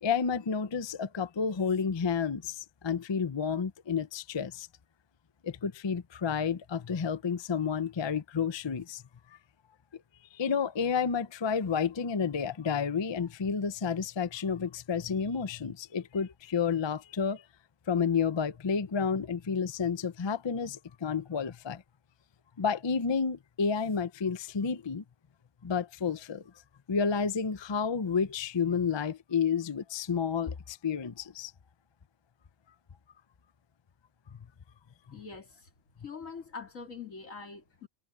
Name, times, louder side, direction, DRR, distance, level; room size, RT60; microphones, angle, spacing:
voice 1, 0.0-4.7 5.4-9.0 10.3-17.4 17.9-21.8 22.6-25.0 25.6-26.4 26.9-31.5, left 6 dB, 30° left, 0.5 m, -30 dB
voice 2, 35.1-35.7 36.0-37.9, left 5 dB, 85° left, 3.0 m, -44 dB
omnidirectional pair, 1.3 m